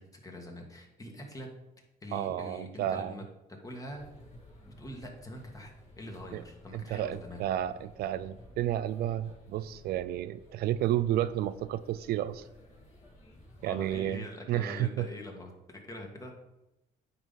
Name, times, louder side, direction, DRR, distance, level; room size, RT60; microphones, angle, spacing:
voice 1, 0.0-1.5 2.0-3.2 3.6-4.1 4.6-7.4 13.6-16.3, left 1 dB, 20° left, 2 dB, 1.7 m, -44 dB
voice 2, 2.1-3.2 6.3-6.4 6.7-12.4 13.6-15.1, right 12 dB, 70° right, 15 dB, 0.4 m, -31 dB
sound 1, 3.9-14.1, left 1 dB, 40° left, 2.6 m, -54 dB
9.5 x 3.9 x 5.5 m, 0.93 s
cardioid pair, 110°, 17 cm